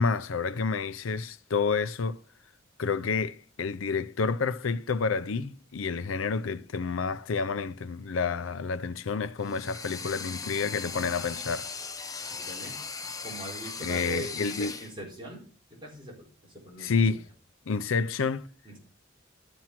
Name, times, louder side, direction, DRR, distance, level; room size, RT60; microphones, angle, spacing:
voice 1, 0.0-2.2 2.8-11.7 13.8-14.7 16.8-17.2 17.7-18.5, left 5 dB, 80° left, 0.5 m, -29 dB
sound 1, 9.4-14.9, left 4 dB, 20° left, 0.8 m, -38 dB
voice 2, 12.2-12.8 13.2-15.4 15.8-16.2 16.5-17.0 18.7-18.8, right 1 dB, 25° right, 4.3 m, -41 dB
12.5 x 6.0 x 5.9 m
head